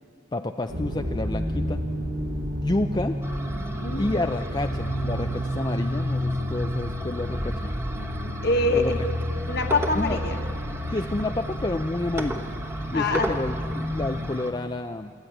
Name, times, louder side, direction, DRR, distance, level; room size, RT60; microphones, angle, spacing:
voice 1, 0.3-1.8 2.6-3.2 4.0-7.6 8.7-8.9 10.0-10.2 10.9-12.4 12.9-15.1, left 2 dB, 25° left, 6 dB, 0.4 m, -29 dB
sound 1, 0.7-14.3, equal, 45° right, 1.6 m, -30 dB
sound 2, 3.2-14.5, right 1 dB, 15° right, 1.1 m, -37 dB
voice 2, 3.8-4.3 8.0-9.0 9.5-10.4 12.9-13.3, left 2 dB, 55° left, 4 dB, 1.4 m, -25 dB
27.0 x 10.5 x 9.2 m, 2.2 s
head